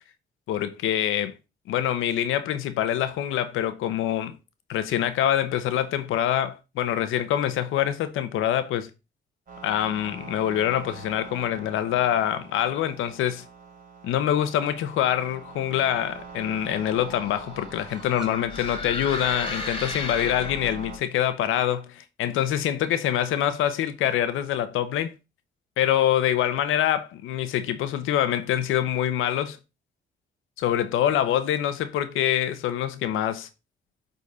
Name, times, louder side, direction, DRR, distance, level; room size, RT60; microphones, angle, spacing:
voice 1, 0.5-1.3 1.7-4.4 4.7-8.9 9.6-13.4 14.0-25.1 25.8-29.6 30.6-33.5, left 11 dB, 85° left, 1.0 m, -25 dB
sound 1, 9.5-21.0, right 5 dB, 45° right, 4.1 m, -44 dB
sound 2, 16.5-21.0, left 3 dB, 25° left, 2.3 m, -35 dB
sound 3, 17.8-18.4 19.0-19.4 20.4-20.6 21.3-21.7 22.5-22.6 22.9-23.0 23.8-24.0, right 2 dB, 5° right, 2.2 m, -47 dB
8.8 x 4.1 x 4.0 m
cardioid pair, 90°, 20 cm